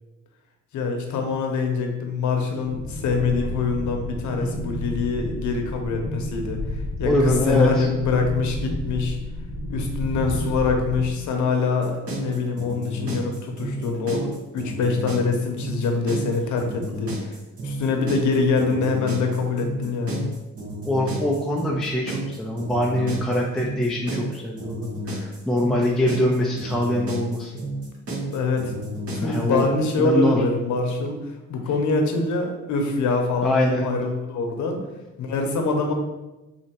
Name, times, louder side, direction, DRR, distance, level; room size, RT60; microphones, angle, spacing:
voice 1, 0.7-6.6 7.0-9.2 9.7-17.3 17.6-20.3 28.3-28.7 29.1-31.2 31.5-34.8 35.2-35.9, left 4 dB, 75° left, 3 dB, 0.9 m, -24 dB
sound 1, 2.6-11.1, equal, 85° right, 1.4 m, -31 dB
voice 2, 7.0-7.9 13.0-13.2 16.9-17.0 20.8-27.5 29.2-29.7 30.0-30.4 33.4-33.8, left 1 dB, ahead, -2 dB, 0.5 m, -23 dB
sound 2, 11.8-29.8, right 1 dB, 50° right, 1.5 m, -32 dB
3.9 x 2.9 x 4.4 m, 1.1 s
cardioid pair, 90°, 30 cm